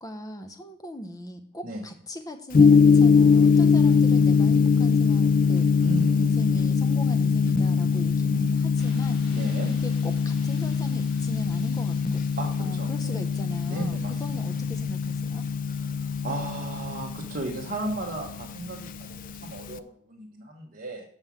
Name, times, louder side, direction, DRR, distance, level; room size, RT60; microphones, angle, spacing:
voice 1, 0.0-5.7 6.2-9.2 9.7-12.2 12.6-15.5, equal, 15° left, 7 dB, 0.8 m, -39 dB
Gong, 2.5-19.8, left 5 dB, 40° left, 0.3 m, -22 dB
voice 2, 5.8-6.2 9.3-9.7 12.4-13.2 13.7-14.5 15.7-21.0, right 2 dB, 40° right, -2 dB, 1.1 m, -35 dB
sound 1, 8.8-14.6, left 2 dB, 60° left, 3.3 m, -52 dB
6.1 x 5.4 x 7.0 m, 0.66 s
head